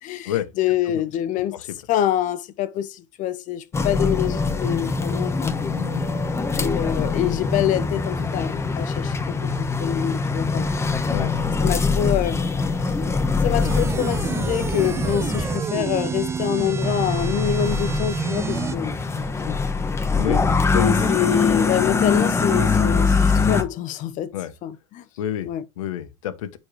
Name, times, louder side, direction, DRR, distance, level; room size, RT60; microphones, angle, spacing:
voice 1, 0.0-1.5 1.9-5.5 6.6-10.7 11.6-12.4 12.7-13.0 13.4-19.0 19.4-19.6 20.7-24.3 24.6-25.0 25.4-25.6, left 11 dB, 50° left, 0.9 m, -26 dB
sound 1, 3.7-15.6 16.8-23.6, left 4 dB, 15° left, 1.1 m, -23 dB
voice 2, 5.7-6.1 11.1-11.3 20.2-20.4 20.7-21.1 24.3-24.5 25.2-25.5 25.8-26.6, left 11 dB, 85° left, 1.1 m, -28 dB
sound 2, 13.6-18.8, right 5 dB, 15° right, 0.5 m, -27 dB
9.7 x 4.2 x 3.3 m
supercardioid pair, 100°, 16 cm